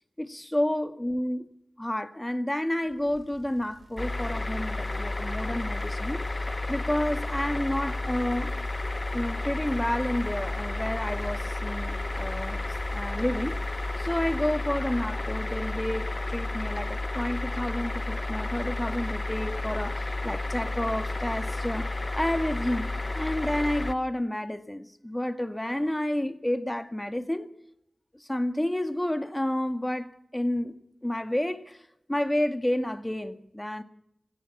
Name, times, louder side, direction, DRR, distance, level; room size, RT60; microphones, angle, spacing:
voice 1, 0.2-1.5 1.8-8.5 9.1-12.6 12.9-13.6 14.0-21.9 22.1-22.9 23.2-27.5 28.2-30.7 31.0-31.8 32.1-33.8, left 1 dB, 15° left, 1.9 m, -30 dB
Bicycle, 2.9-14.6, right 2 dB, 50° right, 7.5 m, -50 dB
sound 1, 4.0-23.9, left 2 dB, 30° left, 0.8 m, -31 dB
24.5 x 16.5 x 7.3 m
cardioid pair, 50°, 0 cm